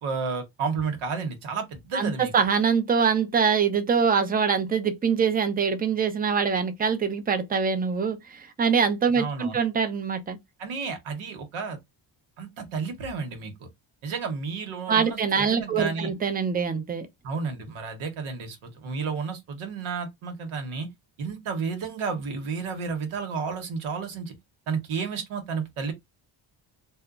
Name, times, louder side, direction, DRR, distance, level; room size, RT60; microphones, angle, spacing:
voice 1, 0.0-2.3 9.2-9.6 10.6-11.8 12.4-13.7 14.0-16.1 17.2-20.9 21.2-24.3 24.7-25.9, right 5 dB, 90° right, 1.0 m, -32 dB
voice 2, 1.9-10.4 14.9-17.1, right 6 dB, 20° right, 0.5 m, -24 dB
2.8 x 2.1 x 2.3 m
cardioid pair, 120°, 47 cm